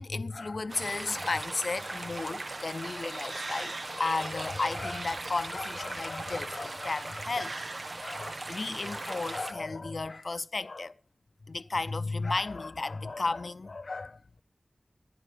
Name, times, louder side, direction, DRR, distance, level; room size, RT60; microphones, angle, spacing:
voice 1, 0.0-7.5 7.8-11.0 11.5-14.4, left 3 dB, 70° left, 0.6 m, -34 dB
sound 1, 0.7-9.5, right 2 dB, 60° right, 1.2 m, -38 dB
15.5 x 11.0 x 5.4 m
wide cardioid pair, 75°, 0 cm